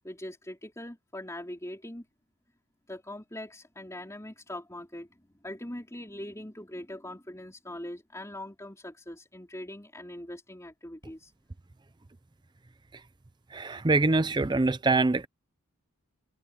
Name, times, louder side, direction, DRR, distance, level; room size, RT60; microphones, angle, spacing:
voice 1, 0.0-2.0 2.9-11.3, left 1 dB, 15° left, 4.0 m, -42 dB
voice 2, 13.5-15.3, right 3 dB, 20° right, 0.5 m, -24 dB
head